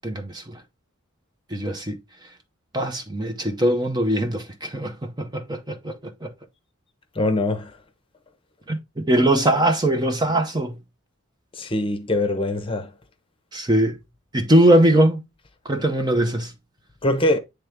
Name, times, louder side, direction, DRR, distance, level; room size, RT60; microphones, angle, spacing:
voice 1, 0.0-0.6 1.5-2.0 2.7-6.3 8.7-10.8 13.5-14.0 14.3-15.2 15.7-16.5, right 1 dB, 20° right, 0.7 m, -21 dB
voice 2, 7.2-7.7 11.6-12.9 17.0-17.4, left 1 dB, 25° left, 0.8 m, -22 dB
9.1 x 3.4 x 3.4 m
head